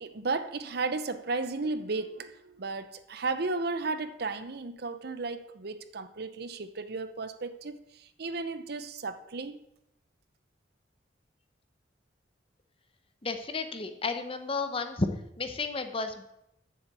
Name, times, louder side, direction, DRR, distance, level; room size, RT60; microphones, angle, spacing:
voice 1, 0.0-9.6, right 3 dB, 55° right, 0.7 m, -34 dB
voice 2, 13.2-15.1 15.4-16.2, left 3 dB, 30° left, 0.8 m, -32 dB
7.3 x 7.2 x 8.2 m
head